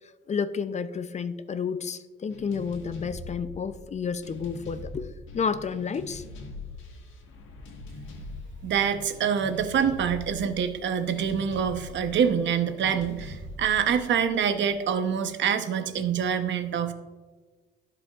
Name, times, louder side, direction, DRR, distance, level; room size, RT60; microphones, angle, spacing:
voice 1, 0.3-5.1 5.3-6.2, left 6 dB, 35° left, 13 dB, 0.5 m, -31 dB
sound 1, 2.3-15.0, left 2 dB, 85° left, 1.4 m, -43 dB
voice 2, 8.6-16.9, right 7 dB, 65° right, 9 dB, 0.8 m, -26 dB
14.5 x 5.1 x 2.4 m, 1.3 s
cardioid pair, 90°, 20 cm